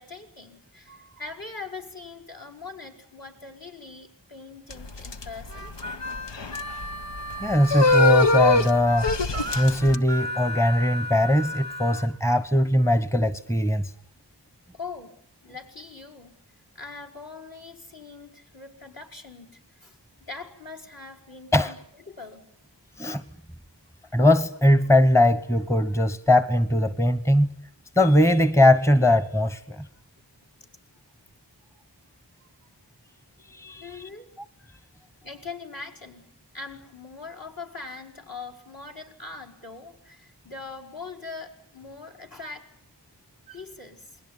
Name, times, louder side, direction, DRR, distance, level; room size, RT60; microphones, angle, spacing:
voice 1, 0.0-5.7 14.7-15.2 15.4-16.4 16.7-21.8 22.1-22.5 33.8-34.3 35.2-36.3 36.5-42.7 43.5-44.2, left 4 dB, 55° left, 5.3 m, -41 dB
sound 1, 4.7-10.0, left 2 dB, 75° left, 1.2 m, -23 dB
Harmonica, 5.5-12.1, equal, 35° left, 5.9 m, -34 dB
voice 2, 7.4-9.1 9.5-13.9 21.5-21.7 23.0-23.2 24.1-27.5 28.0-29.9 33.5-34.1, left 1 dB, 5° left, 1.2 m, -20 dB
28.5 x 21.5 x 9.8 m
wide cardioid pair, 40°, 43 cm